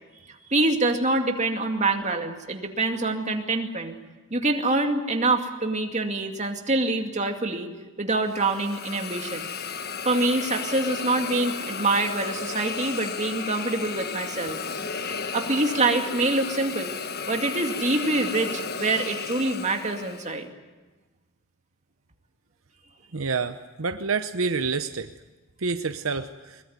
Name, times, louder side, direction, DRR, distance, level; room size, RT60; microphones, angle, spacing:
voice 1, 0.3-4.0 4.3-7.7 8.0-9.5 10.0-14.6 15.3-16.9 17.3-20.5, right 2 dB, 30° right, 4 dB, 2.4 m, -25 dB
Hiss, 8.3-20.4, left 5 dB, 45° left, 1.3 m, -34 dB
voice 2, 23.1-25.1 25.6-26.6, right 4 dB, 70° right, 9 dB, 0.9 m, -28 dB
22.0 x 21.5 x 9.4 m, 1.2 s
head